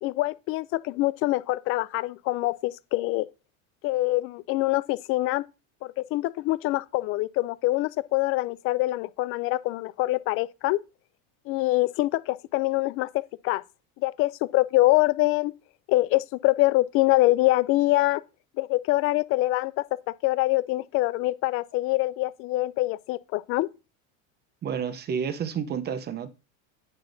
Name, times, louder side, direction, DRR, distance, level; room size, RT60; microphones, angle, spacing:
voice 1, 0.0-3.3 3.8-5.4 5.8-10.8 11.5-13.6 14.0-15.5 15.9-18.2 18.6-19.8 20.2-23.7, left 18 dB, 35° left, 0.4 m, -25 dB
voice 2, 24.6-26.3, right 7 dB, 25° right, 0.8 m, -30 dB
9.6 x 8.9 x 2.6 m
supercardioid pair, 145°, 39 cm